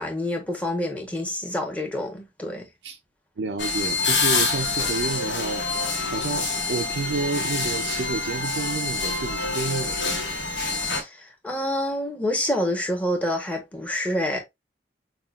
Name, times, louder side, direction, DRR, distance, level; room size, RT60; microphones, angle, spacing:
voice 1, 0.0-2.7 10.8-14.4, left 1 dB, 10° left, 1.0 m, -27 dB
voice 2, 3.4-5.7 6.1-10.2, right 4 dB, 75° right, 0.4 m, -30 dB
sound 1, 3.6-11.0, left 4 dB, 75° left, 1.2 m, -26 dB
5.6 x 2.4 x 2.3 m
head